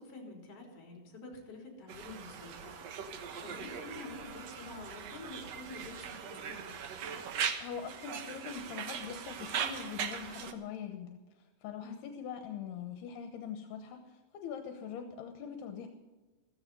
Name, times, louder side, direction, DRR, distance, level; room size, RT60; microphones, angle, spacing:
voice 1, 0.0-2.8 3.1-6.7 11.8-12.1, left 3 dB, 40° left, 1 dB, 4.3 m, -48 dB
Conversation, 1.9-10.5, right 7 dB, 85° right, 1.4 m, -40 dB
voice 2, 7.6-15.9, left 7 dB, 80° left, 6 dB, 3.0 m, -43 dB
15.0 x 14.5 x 5.4 m, 1.2 s
omnidirectional pair, 4.7 m